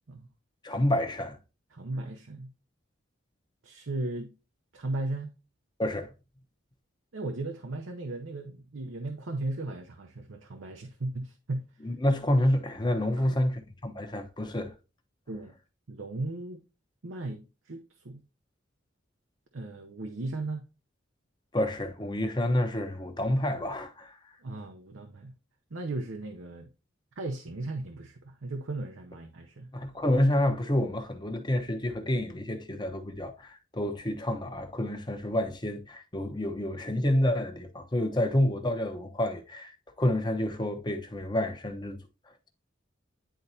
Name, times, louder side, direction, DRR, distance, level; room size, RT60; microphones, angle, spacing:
voice 1, 0.6-1.4 5.8-6.1 11.8-14.7 21.5-24.2 29.7-42.0, left 1 dB, 25° left, 0.9 m, -28 dB
voice 2, 1.7-2.5 3.6-4.3 4.7-5.3 7.1-11.6 13.2-13.4 15.3-15.5 15.9-16.6 17.0-18.2 19.5-20.6 24.4-25.3 25.7-26.7 27.2-29.7, right 2 dB, 85° right, 0.8 m, -36 dB
10.0 x 3.9 x 2.7 m
head